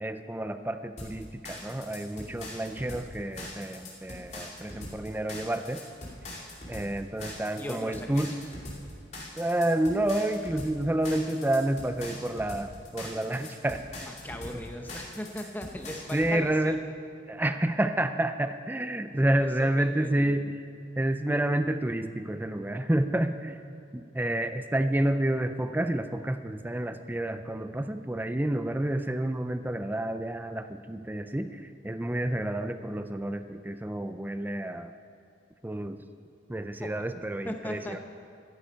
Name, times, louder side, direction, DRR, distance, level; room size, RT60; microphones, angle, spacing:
voice 1, 0.0-5.8 6.7-8.3 9.4-14.1 14.5-14.6 16.1-16.8 17.3-20.6 21.0-23.6 23.9-34.9 35.6-36.0 36.5-38.0, right 1 dB, 10° right, 9 dB, 0.4 m, -29 dB
sound 1, 1.0-16.3, left 1 dB, 35° left, 2.5 m, -42 dB
voice 2, 7.6-8.2 14.1-16.9 19.1-20.5 36.8-37.2 37.4-38.0, left 1 dB, 10° left, 3 dB, 0.7 m, -39 dB
12.5 x 11.5 x 5.3 m, 2.5 s
head